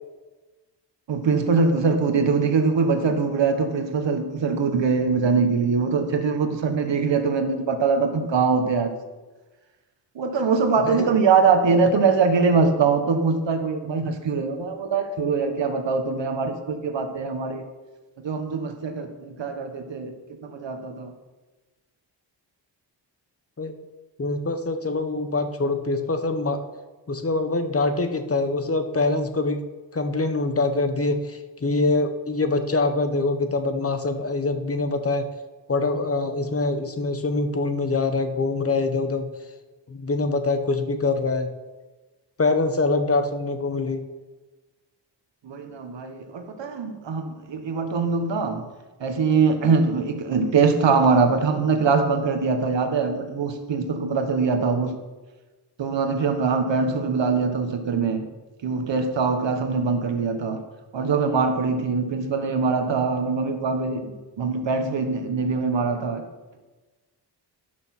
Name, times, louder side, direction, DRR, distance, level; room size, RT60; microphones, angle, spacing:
voice 1, 1.1-8.9 10.1-17.6 18.2-20.1 20.4-21.1 45.4-48.6 49.0-55.0 55.8-58.2 58.6-60.6 60.9-66.2, right 4 dB, 85° right, 7 dB, 1.3 m, -23 dB
voice 2, 24.2-26.6 27.1-29.7 29.9-35.3 35.7-39.3 39.9-41.5 42.4-44.0, left 3 dB, 30° left, 7 dB, 1.0 m, -24 dB
12.0 x 6.3 x 6.0 m, 1.2 s
wide cardioid pair, 115°, 43 cm